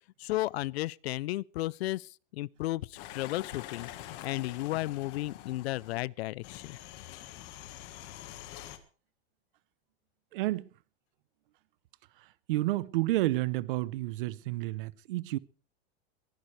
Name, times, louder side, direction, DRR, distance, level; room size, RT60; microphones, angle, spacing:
voice 1, 0.2-6.8, left 17 dB, 80° left, 0.6 m, -34 dB
sound 1, 3.0-6.0 6.4-8.8, left 13 dB, 35° left, 1.5 m, -46 dB
voice 2, 10.3-10.7 12.5-15.4, right 17 dB, 55° right, 0.8 m, -30 dB
22.5 x 14.5 x 3.3 m
supercardioid pair, 180°, 31 cm